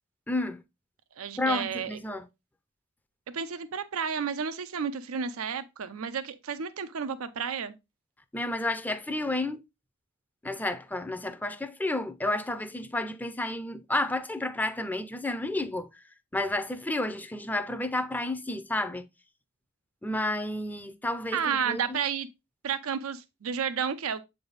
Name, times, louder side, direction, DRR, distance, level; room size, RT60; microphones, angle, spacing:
voice 1, 0.3-0.6 1.4-2.2 8.3-9.6 10.4-15.9 16.3-19.1 20.0-21.4 21.7-22.0, left 1 dB, 10° left, 0.5 m, -31 dB
voice 2, 1.2-2.0 3.3-7.7 21.3-22.3 22.6-24.2, right 7 dB, 85° right, 0.5 m, -31 dB
7.7 x 3.5 x 3.9 m
head